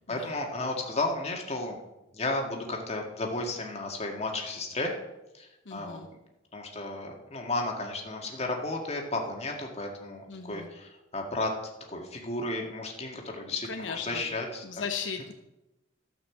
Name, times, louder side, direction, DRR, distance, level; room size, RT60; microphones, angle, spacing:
voice 1, 0.1-1.8 2.1-4.9 5.3-6.0 6.5-11.5 11.9-14.6, left 2 dB, 35° left, 1 dB, 1.9 m, -33 dB
voice 2, 5.6-6.1 10.3-10.7 13.7-14.2 14.6-15.3, left 5 dB, 80° left, 5 dB, 0.9 m, -37 dB
12.5 x 5.8 x 7.2 m, 0.96 s
head